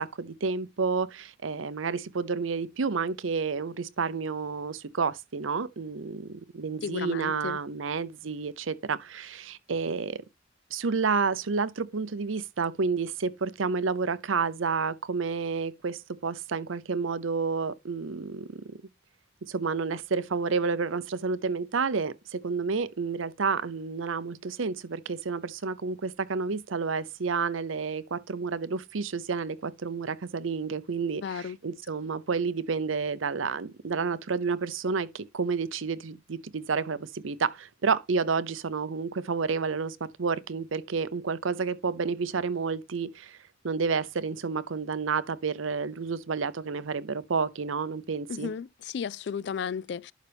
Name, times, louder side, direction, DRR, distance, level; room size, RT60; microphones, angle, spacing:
voice 1, 0.0-10.2 10.7-18.6 19.5-43.4 43.6-48.5, right 5 dB, 85° right, 0.7 m, -30 dB
voice 2, 6.8-7.6 31.2-31.6 48.3-50.1, left 6 dB, 60° left, 0.3 m, -34 dB
11.5 x 4.0 x 3.4 m
head